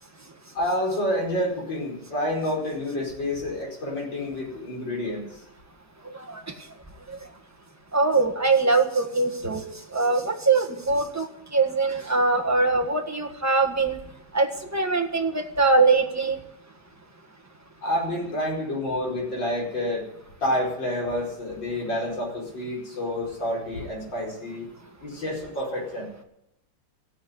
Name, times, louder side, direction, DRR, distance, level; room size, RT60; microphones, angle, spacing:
voice 1, 0.5-5.2 17.8-20.0 20.4-24.7 25.0-26.1, left 1 dB, 70° left, -3 dB, 5.8 m, -28 dB
voice 2, 7.9-11.3 11.5-14.0 14.3-16.4, right 3 dB, 10° right, 4 dB, 1.2 m, -22 dB
15.0 x 9.1 x 9.7 m, 0.81 s
omnidirectional pair, 2.1 m